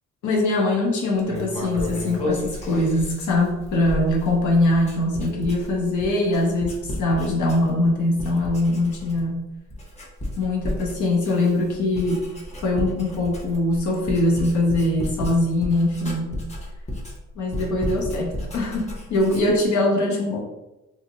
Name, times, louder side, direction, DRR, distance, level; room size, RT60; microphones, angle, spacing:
voice 1, 0.2-9.4 10.4-12.2 12.6-16.4 17.4-20.4, left 2 dB, 75° left, -1 dB, 0.8 m, -22 dB
Writing, 1.2-7.9 8.2-9.4 9.7-19.7, left 1 dB, 20° left, 0.7 m, -33 dB
2.5 x 2.3 x 3.0 m, 0.98 s
cardioid pair, 90°, 30 cm